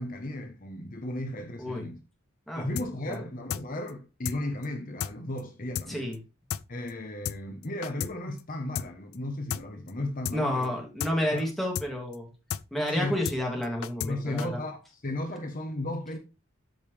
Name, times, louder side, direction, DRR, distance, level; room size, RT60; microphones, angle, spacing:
voice 1, 0.0-2.0 2.5-6.1 6.7-10.7 11.3-11.4 12.9-13.2 14.0-16.2, left 1 dB, 40° left, 1.0 m, -35 dB
sound 1, 2.8-2.9 3.1-3.2 3.5-3.6 3.9-4.0 4.2-4.4 4.6-4.7 5.0-5.1 5.4-5.5 5.7-5.9 6.1-6.2 6.5-6.6 6.9-7.0 7.2-7.4 7.6-8.1 8.4-8.5 8.7-8.9 9.1-9.2 9.5-9.6 9.9-10.0 10.2-10.4 10.6-10.7 11.0-11.1 11.4-11.5 11.7-11.9 12.1-12.2 12.5-12.6 12.9-13.0 13.2-13.4 13.6-14.1 14.4-14.5, left 8 dB, 80° left, 0.4 m, -33 dB
voice 2, 10.3-12.3 12.7-14.6, left 1 dB, ahead, 2.6 m, -30 dB
13.0 x 5.4 x 3.3 m
head